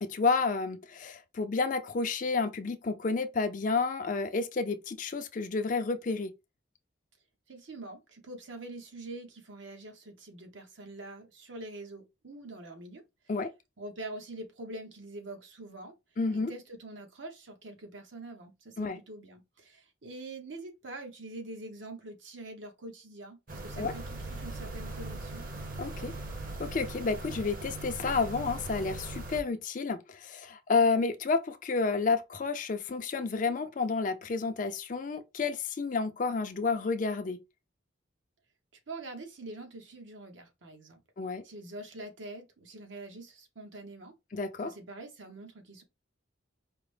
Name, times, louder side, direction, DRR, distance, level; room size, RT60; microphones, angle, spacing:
voice 1, 0.0-6.3 13.3-13.5 16.2-16.5 18.8-19.0 23.8-23.9 25.8-26.1 26.6-37.4 41.2-41.4 44.3-44.7, left 4 dB, 40° left, 0.4 m, -30 dB
voice 2, 7.5-13.0 13.8-16.0 16.3-25.4 38.9-41.0 41.4-44.2 44.6-45.8, right 2 dB, 75° right, 1.0 m, -45 dB
sound 1, 23.5-29.4, right 2 dB, 45° right, 0.8 m, -40 dB
4.8 x 2.0 x 3.2 m
head